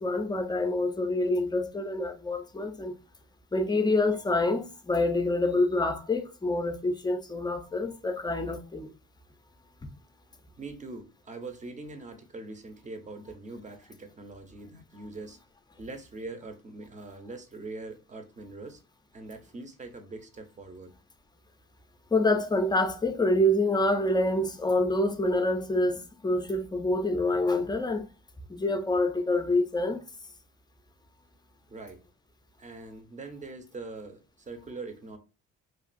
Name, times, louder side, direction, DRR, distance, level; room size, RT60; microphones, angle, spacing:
voice 1, 0.0-3.0 3.5-8.9 22.1-28.1 28.5-30.0, left 2 dB, 15° left, 0.4 m, -26 dB
voice 2, 10.6-15.4 15.8-18.8 19.1-20.9 31.7-32.0 32.6-35.2, right 3 dB, 25° right, 0.7 m, -42 dB
3.1 x 2.4 x 2.5 m
cardioid pair, 90°, 30 cm